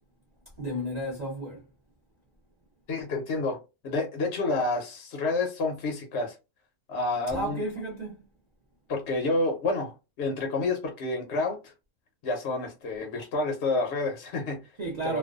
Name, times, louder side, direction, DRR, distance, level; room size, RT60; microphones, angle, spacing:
voice 1, 0.6-1.6 7.3-8.3 14.8-15.2, right 1 dB, 45° right, 0.6 m, -32 dB
voice 2, 2.9-3.6 3.8-6.3 6.9-7.6 8.9-11.7 12.2-14.6 15.0-15.2, left 3 dB, 65° left, 0.8 m, -29 dB
2.5 x 2.2 x 2.3 m
omnidirectional pair, 1.5 m